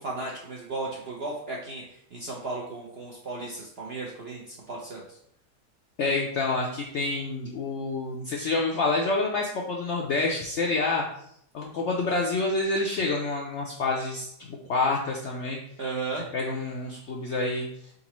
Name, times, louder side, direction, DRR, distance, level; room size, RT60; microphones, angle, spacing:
voice 1, 0.0-5.0 15.8-16.3, right 3 dB, 60° right, -2 dB, 0.6 m, -35 dB
voice 2, 6.0-11.0 11.5-15.6 16.3-17.7, left 3 dB, 70° left, -1 dB, 0.6 m, -28 dB
3.9 x 3.8 x 3.0 m, 0.72 s
omnidirectional pair, 1.7 m